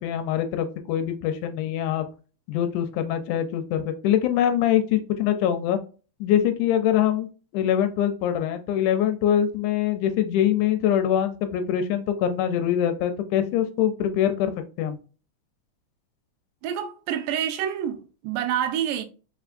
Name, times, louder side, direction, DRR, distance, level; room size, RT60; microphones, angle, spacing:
voice 1, 0.0-2.1 2.5-5.8 6.2-7.3 7.5-14.5 14.8-15.0, left 10 dB, 80° left, 2.0 m, -23 dB
voice 2, 16.6-19.0, right 9 dB, 85° right, 2.3 m, -27 dB
4.9 x 3.5 x 2.5 m
omnidirectional pair, 3.8 m